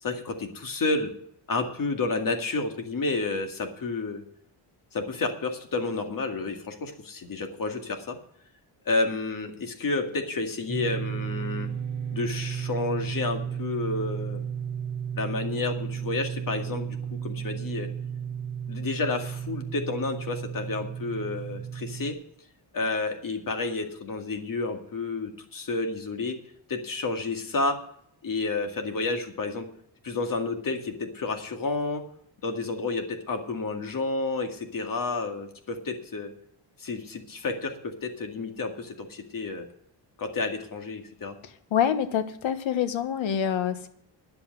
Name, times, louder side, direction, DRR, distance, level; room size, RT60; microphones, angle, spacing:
voice 1, 0.0-1.1 1.5-4.2 4.9-8.2 8.9-11.7 12.1-14.4 15.1-17.9 18.7-22.2 22.7-26.4 26.7-27.8 28.2-29.7 30.0-32.1 32.4-36.3 36.8-39.7 40.2-41.4, left 3 dB, 45° left, 4 dB, 2.1 m, -30 dB
sound 1, 10.7-22.1, right 8 dB, 25° right, 2.1 m, -33 dB
voice 2, 41.7-43.9, left 9 dB, 85° left, 10 dB, 1.3 m, -26 dB
10.5 x 8.0 x 7.5 m, 0.68 s
cardioid pair, 120°, 46 cm